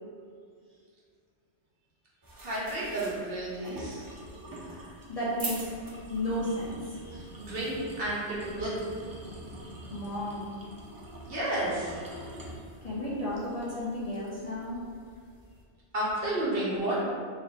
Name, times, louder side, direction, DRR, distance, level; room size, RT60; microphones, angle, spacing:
sound 1, 2.2-15.6, right 1 dB, 35° right, 0.3 m, -45 dB
voice 1, 2.4-4.1 7.0-8.8 11.2-12.5 15.9-17.0, right 1 dB, 55° right, -7 dB, 1.1 m, -32 dB
voice 2, 4.5-5.7 6.1-7.0 9.9-10.6 12.8-14.8, left 1 dB, 40° left, -9 dB, 0.7 m, -33 dB
3.1 x 2.7 x 4.0 m, 2.1 s
omnidirectional pair, 1.2 m